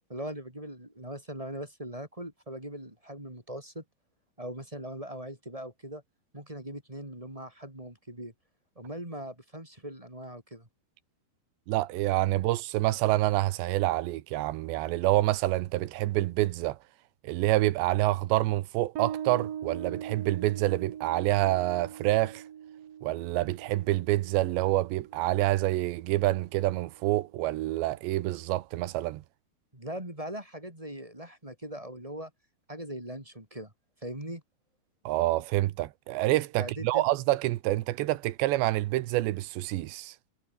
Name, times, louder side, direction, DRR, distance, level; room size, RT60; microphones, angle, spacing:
voice 1, 0.1-3.8 4.4-6.0 6.3-8.3 8.8-10.7 29.7-32.3 32.7-33.7 34.0-34.4 36.6-37.1, right 1 dB, 10° right, 4.4 m, -40 dB
voice 2, 11.7-16.8 17.2-22.4 23.0-29.2 35.1-40.2, right 17 dB, 85° right, 3.3 m, -27 dB
Bass guitar, 19.0-26.1, right 9 dB, 55° right, 2.0 m, -41 dB
omnidirectional pair, 4.9 m